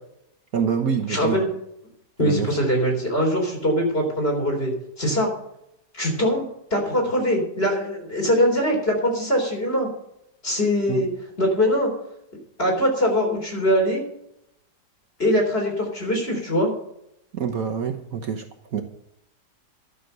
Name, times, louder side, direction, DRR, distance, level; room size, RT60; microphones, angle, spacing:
voice 1, 0.5-1.4 2.2-2.6 10.9-11.0 17.3-18.8, right 7 dB, 60° right, 1.4 m, -26 dB
voice 2, 1.1-1.5 2.2-5.3 5.9-9.9 10.4-11.1 11.4-11.9 12.6-14.0 15.2-16.7, equal, 35° left, 4.1 m, -22 dB
12.0 x 6.6 x 7.8 m
omnidirectional pair, 1.8 m